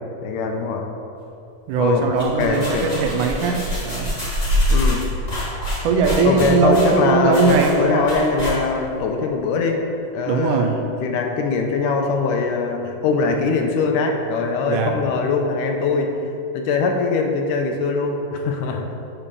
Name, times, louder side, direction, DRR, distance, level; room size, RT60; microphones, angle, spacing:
voice 1, 0.2-0.8 1.8-2.9 4.7-5.1 6.2-9.8 10.1-16.1 16.5-18.9, left 4 dB, 80° left, 3 dB, 2.1 m, -22 dB
voice 2, 1.7-4.2 5.8-8.2 10.3-10.8 14.6-15.1, right 4 dB, 80° right, 3 dB, 2.0 m, -20 dB
sound 1, 2.0-8.9, left 1 dB, 45° left, 0.5 m, -25 dB
9.0 x 4.2 x 6.6 m, 2.7 s
omnidirectional pair, 3.9 m